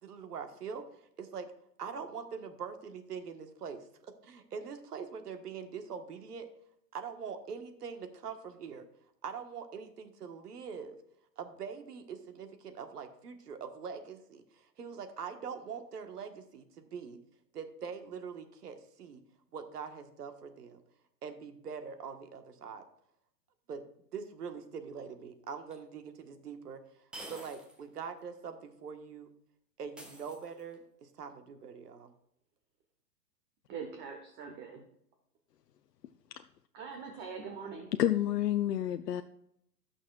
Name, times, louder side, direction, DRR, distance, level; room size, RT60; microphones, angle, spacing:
voice 1, 0.0-1.5 1.8-6.5 6.9-8.8 9.2-11.0 11.4-17.2 17.5-19.2 19.5-20.8 21.2-22.8 23.7-23.8 24.1-26.8 27.3-29.3 29.8-32.1, right 6 dB, 65° right, 7 dB, 1.5 m, -43 dB
sound 1, 25.7-25.8 27.1-27.8 28.2-28.3 30.0-30.9, right 1 dB, ahead, 0.6 m, -48 dB
voice 2, 33.7-34.8 36.7-37.9, right 5 dB, 20° right, 3 dB, 1.1 m, -43 dB
voice 3, 38.0-39.2, left 12 dB, 70° left, 8 dB, 0.6 m, -29 dB
18.0 x 6.2 x 2.4 m, 0.74 s
hypercardioid pair, 120°, 49 cm